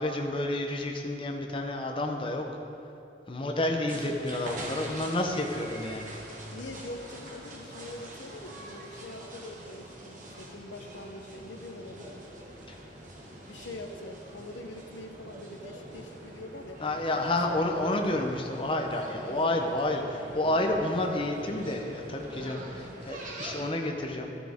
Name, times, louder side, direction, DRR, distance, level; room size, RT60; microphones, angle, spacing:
voice 1, 0.0-2.5 3.3-6.2 12.7-12.8 16.8-24.4, left 1 dB, 30° left, 2 dB, 0.8 m, -30 dB
voice 2, 3.9-4.3 6.5-12.3 13.5-17.0 17.2-18.0 19.3-19.6 22.3-22.9, left 2 dB, 85° left, 6 dB, 0.8 m, -44 dB
sound 1, 3.9-23.7, right 1 dB, 45° right, 1.4 m, -44 dB
12.0 x 9.9 x 3.6 m, 2.8 s
head